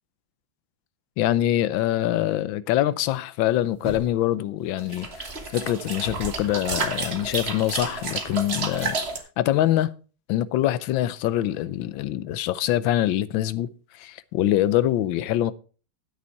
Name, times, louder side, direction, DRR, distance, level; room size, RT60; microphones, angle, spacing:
voice 1, 1.2-9.0 9.4-9.9 10.3-13.7 13.9-15.5, left 13 dB, 80° left, 1.4 m, -24 dB
sound 1, 3.8-4.5 5.0-5.8 6.1-6.2, equal, 15° right, 1.5 m, -41 dB
sound 2, 4.8-9.2, right 3 dB, 35° right, 1.5 m, -31 dB
9.7 x 8.4 x 4.6 m
omnidirectional pair, 2.1 m